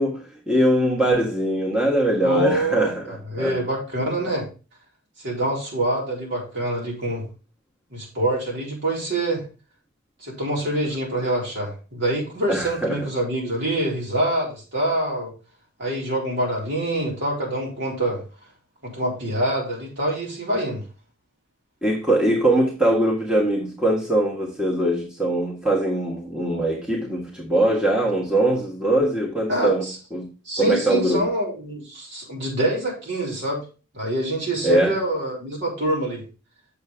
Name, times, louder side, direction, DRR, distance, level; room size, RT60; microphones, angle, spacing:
voice 1, 0.0-3.6 12.5-13.1 21.8-30.3 30.6-31.3 34.6-35.0, right 1 dB, 5° right, 1.5 m, -22 dB
voice 2, 2.2-4.5 5.2-7.2 7.9-9.4 10.2-15.3 15.8-18.2 18.8-20.8 29.5-30.0 30.5-33.6 33.9-36.2, right 1 dB, 55° right, 4.3 m, -25 dB
8.0 x 6.9 x 3.6 m
head